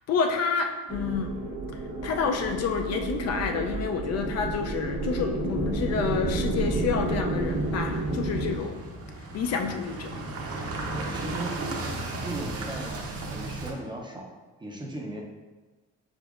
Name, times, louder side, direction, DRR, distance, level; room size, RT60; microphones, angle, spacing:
voice 1, 0.1-1.3 2.0-8.8 9.3-10.2, left 5 dB, 55° left, 5 dB, 0.5 m, -29 dB
sound 1, 0.9-8.6, right 2 dB, 65° right, 1.2 m, -30 dB
sound 2, 6.0-13.7, right 2 dB, 50° right, 0.8 m, -36 dB
voice 2, 10.9-11.6 12.2-14.3 14.6-15.2, right 2 dB, 15° right, -1 dB, 0.5 m, -37 dB
5.1 x 4.0 x 2.4 m, 1.3 s
cardioid pair, 130°, 31 cm